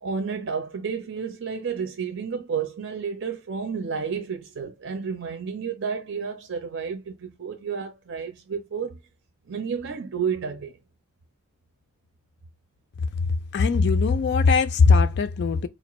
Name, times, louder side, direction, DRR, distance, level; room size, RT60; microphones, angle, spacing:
voice 1, 0.0-9.0 9.5-10.8, right 6 dB, 60° right, 0.6 m, -31 dB
voice 2, 13.5-15.7, left 4 dB, 55° left, 0.3 m, -19 dB
4.1 x 2.4 x 3.0 m
head